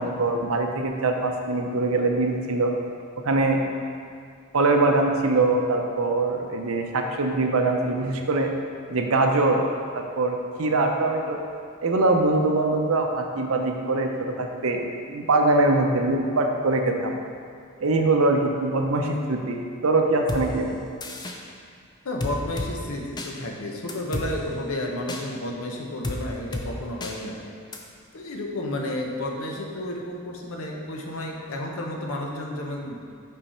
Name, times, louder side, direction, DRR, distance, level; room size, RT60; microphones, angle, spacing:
voice 1, 0.0-2.7 3.2-3.6 4.5-8.5 8.9-9.6 9.9-11.4 11.8-14.8 15.1-17.1 17.8-20.8, right 2 dB, 80° right, 3 dB, 0.7 m, -23 dB
sound 1, 20.3-20.4 21.0-21.4 22.2-22.7 23.2-23.3 23.9-24.3 25.1-25.2 26.0-26.2 26.5-26.7 27.0-27.1 27.7-27.8, left 2 dB, 20° left, 0.4 m, -30 dB
voice 2, 22.0-27.4 28.1-33.0, left 1 dB, 85° left, 0 dB, 0.9 m, -32 dB
5.5 x 5.4 x 4.3 m, 2.2 s
head